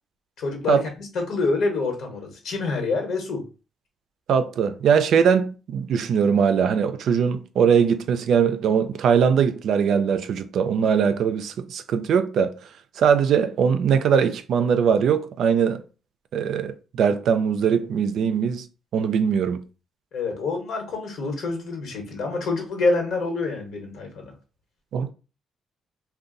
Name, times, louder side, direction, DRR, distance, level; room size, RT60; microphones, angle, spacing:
voice 1, 0.4-3.4 20.1-24.3, left 3 dB, 70° left, 1.2 m, -27 dB
voice 2, 4.3-12.5 13.0-15.8 16.3-18.7 18.9-19.6 24.9-25.1, right 7 dB, 70° right, 0.4 m, -21 dB
2.6 x 2.2 x 3.8 m
cardioid pair, 90°, 0 cm